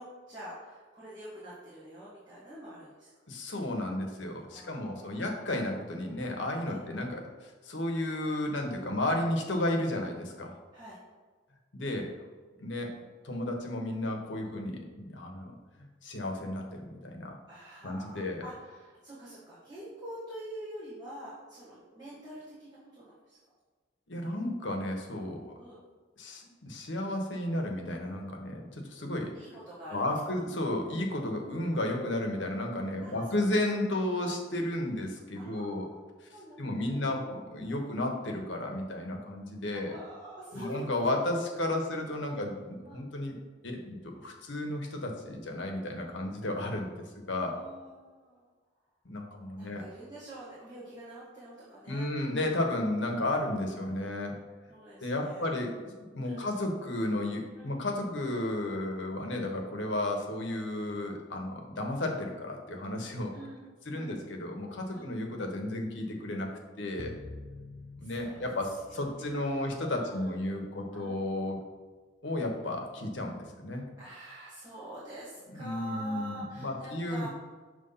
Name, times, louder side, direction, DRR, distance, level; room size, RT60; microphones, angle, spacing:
voice 1, 0.0-3.1 4.5-5.2 6.6-6.8 10.7-11.0 17.5-23.4 25.6-25.8 29.3-30.0 33.0-33.6 34.2-34.4 35.3-36.0 36.3-37.3 37.6-37.8 39.7-40.9 42.3-42.4 42.9-43.0 47.4-48.5 49.6-52.1 53.5-53.9 54.7-55.5 56.2-56.5 57.6-57.8 63.3-63.7 64.0-64.2 64.9-65.1 68.0-68.4 68.7-70.4 70.9-71.2 74.0-77.3, right 1 dB, 20° right, -10 dB, 1.6 m, -46 dB
voice 2, 3.3-10.6 11.7-12.1 12.6-15.5 16.0-17.4 17.8-18.4 24.1-25.5 26.2-29.3 29.9-35.8 36.6-39.9 40.5-43.4 43.6-46.9 47.3-47.6 49.0-49.8 51.9-54.4 55.0-55.8 56.1-63.3 63.9-66.5 66.8-67.2 68.0-71.6 72.2-73.8 75.5-77.3, left 1 dB, 75° left, 2 dB, 1.0 m, -33 dB
sound 1, 67.0-71.4, left 2 dB, 30° left, 0.4 m, -49 dB
6.7 x 3.1 x 5.6 m, 1.4 s
head